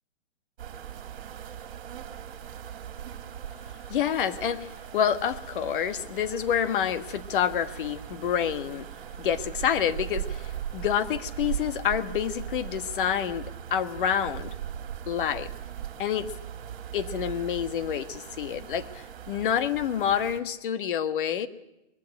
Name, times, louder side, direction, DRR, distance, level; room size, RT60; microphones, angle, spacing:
sound 1, 0.6-20.4, right 9 dB, 50° right, 3.1 m, -39 dB
voice 1, 3.9-8.9 9.2-14.5 15.1-15.5 16.0-16.3 16.9-21.5, left 9 dB, 45° left, 11 dB, 1.5 m, -28 dB
21.0 x 16.0 x 9.9 m, 0.90 s
hypercardioid pair, 150°, 35 cm